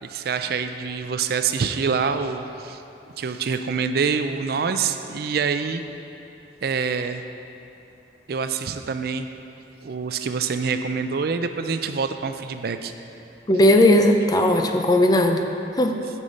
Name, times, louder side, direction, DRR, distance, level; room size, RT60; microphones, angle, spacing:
voice 1, 0.0-2.8 3.2-5.8 6.6-7.2 8.3-9.3 9.8-12.9, right 5 dB, 55° right, 8 dB, 0.4 m, -26 dB
voice 2, 13.5-15.5 15.8-16.0, left 1 dB, 20° left, 5 dB, 0.4 m, -17 dB
9.6 x 5.5 x 5.2 m, 2.8 s
head